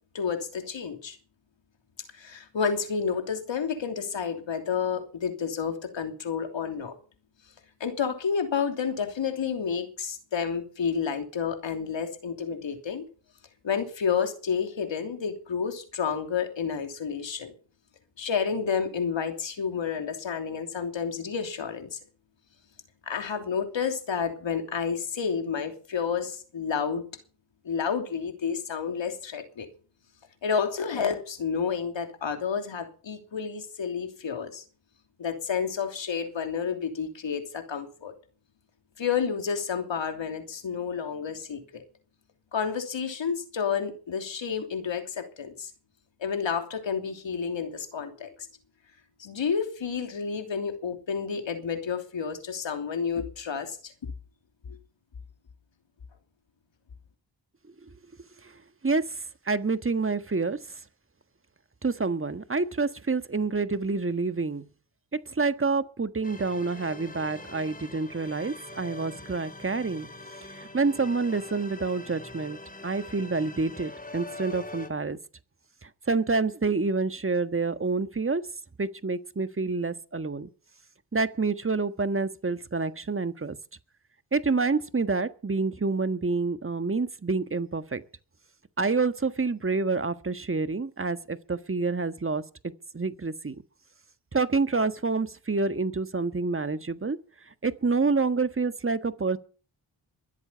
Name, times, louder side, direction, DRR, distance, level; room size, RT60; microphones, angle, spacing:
voice 1, 0.1-1.2 2.2-7.0 7.8-13.1 13.6-17.5 18.2-22.0 23.1-27.0 27.6-29.7 30.4-34.6 35.2-38.1 39.0-41.8 42.5-45.7 46.2-48.3 49.2-53.9 54.7-54.8, left 6 dB, 65° left, 3.0 m, -30 dB
voice 2, 58.8-60.6 61.8-64.6 65.3-70.1 70.5-72.6 72.8-75.2 75.8-78.4 78.8-80.5 81.1-83.6 84.3-88.0 88.8-93.5 94.3-97.2 97.6-99.4, right 4 dB, 25° right, 1.5 m, -28 dB
sound 1, 66.2-74.9, left 2 dB, 15° left, 3.0 m, -43 dB
23.0 x 8.2 x 5.7 m
supercardioid pair, 40°, 48 cm